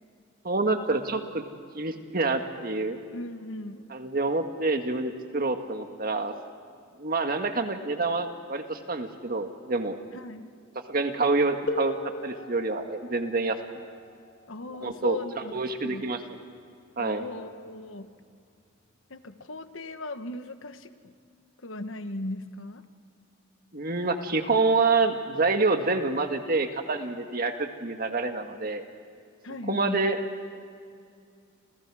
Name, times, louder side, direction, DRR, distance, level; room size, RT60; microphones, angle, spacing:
voice 1, 0.4-1.4 1.7-3.0 3.9-6.3 7.0-10.0 10.9-12.0 12.2-13.6 14.8-15.2 15.5-16.2 17.0-17.2 23.7-28.8 29.7-30.2, right 3 dB, 45° right, 6 dB, 1.7 m, -27 dB
voice 2, 3.1-3.9 10.1-10.5 14.5-16.1 17.0-18.1 19.1-21.1 21.6-22.8 29.4-30.0, left 2 dB, 75° left, 9 dB, 1.2 m, -38 dB
sound 1, 11.7-17.1 18.2-18.3 19.1-19.3, left 2 dB, 60° left, 1.7 m, -40 dB
30.0 x 27.5 x 4.9 m, 2.3 s
head